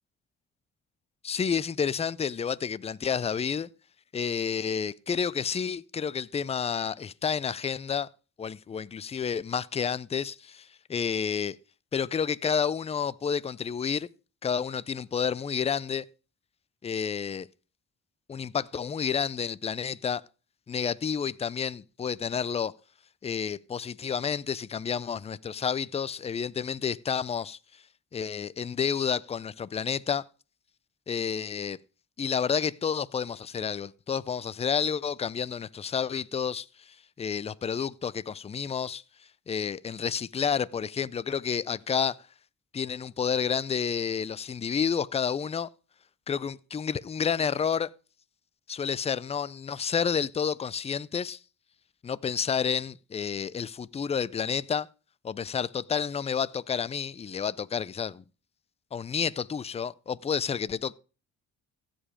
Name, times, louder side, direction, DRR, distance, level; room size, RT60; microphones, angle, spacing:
voice 1, 1.2-3.7 4.1-8.1 8.4-11.6 11.9-14.1 14.4-16.0 16.8-17.5 18.3-20.2 20.7-22.7 23.2-27.6 28.1-30.2 31.1-31.8 32.2-39.0 39.5-42.2 42.7-45.7 46.3-47.9 48.7-51.4 52.0-54.9 55.2-58.2 58.9-60.9, left 7 dB, 20° left, 0.4 m, -30 dB
15.5 x 5.2 x 4.9 m
cardioid pair, 90°, 30 cm